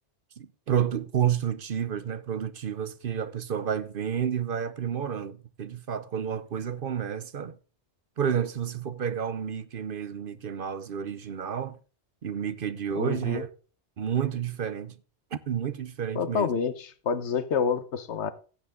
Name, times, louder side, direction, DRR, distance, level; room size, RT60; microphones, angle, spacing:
voice 1, 0.4-7.5 8.2-11.8 12.2-13.5 14.0-14.9 15.3-16.5, right 8 dB, 55° right, 0.9 m, -30 dB
voice 2, 12.9-13.4 16.1-18.3, left 6 dB, 80° left, 1.2 m, -28 dB
15.0 x 8.5 x 3.7 m
omnidirectional pair, 1.1 m